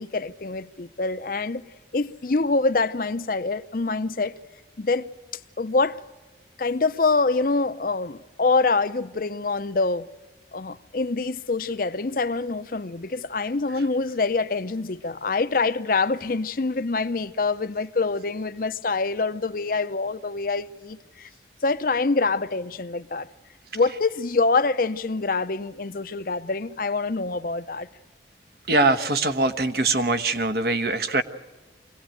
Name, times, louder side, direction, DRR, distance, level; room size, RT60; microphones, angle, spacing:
voice 1, 0.0-1.6 1.9-4.4 4.8-5.1 5.6-6.0 6.6-10.1 10.5-21.3 21.6-23.3 23.7-27.9, left 3 dB, 50° left, 0.6 m, -25 dB
voice 2, 28.7-31.2, right 2 dB, 55° right, 1.1 m, -22 dB
24.0 x 17.5 x 9.0 m
head